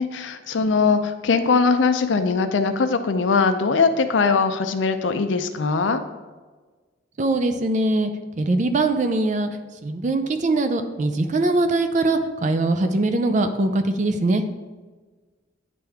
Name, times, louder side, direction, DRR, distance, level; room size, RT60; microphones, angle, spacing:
voice 1, 0.0-6.0, left 4 dB, 75° left, 9 dB, 0.5 m, -21 dB
voice 2, 7.2-8.1 8.4-9.5 9.8-14.4, right 2 dB, 40° right, 8 dB, 0.4 m, -22 dB
9.5 x 3.4 x 3.5 m, 1.3 s
head